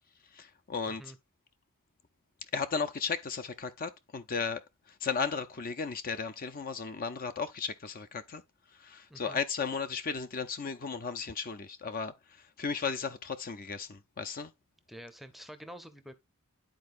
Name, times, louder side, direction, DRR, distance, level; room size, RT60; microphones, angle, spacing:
voice 1, 0.3-1.0 2.5-4.6 5.0-8.4 8.8-14.5, left 5 dB, 40° left, 0.6 m, -35 dB
voice 2, 9.1-9.4 14.9-16.1, equal, ahead, 0.6 m, -47 dB
11.5 x 4.3 x 2.5 m
head